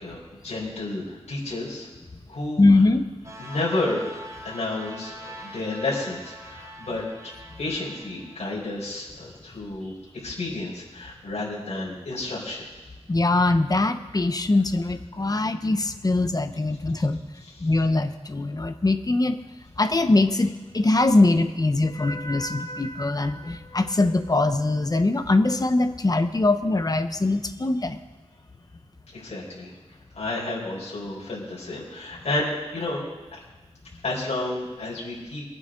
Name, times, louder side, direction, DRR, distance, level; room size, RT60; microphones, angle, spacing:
voice 1, 0.0-1.9 2.3-2.6 3.4-7.3 7.6-9.9 10.2-12.7 17.0-17.1 17.6-17.7 29.1-29.7 30.1-33.1 34.0-35.4, left 2 dB, 85° left, -7 dB, 4.5 m, -31 dB
voice 2, 2.6-3.0 13.1-17.2 17.6-19.4 19.8-28.0, left 2 dB, 35° left, 9 dB, 0.9 m, -22 dB
sound 1, 3.2-8.5, equal, 25° right, 2.0 m, -43 dB
22.0 x 9.0 x 3.8 m, 1.2 s
wide cardioid pair, 75°, 11 cm